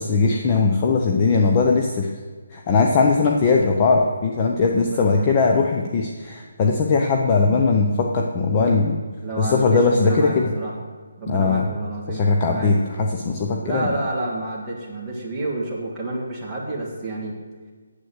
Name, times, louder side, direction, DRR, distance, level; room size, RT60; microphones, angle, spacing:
voice 1, 0.0-2.1 2.5-9.0 9.4-10.5 11.3-11.7 12.1-13.9, left 4 dB, 15° left, 2 dB, 0.5 m, -19 dB
voice 2, 4.8-5.3 6.8-6.9 9.2-10.7 11.2-12.8 13.6-17.4, right 2 dB, 5° right, -8 dB, 1.6 m, -29 dB
9.2 x 7.8 x 8.0 m, 1.5 s
hypercardioid pair, 180°, 0 cm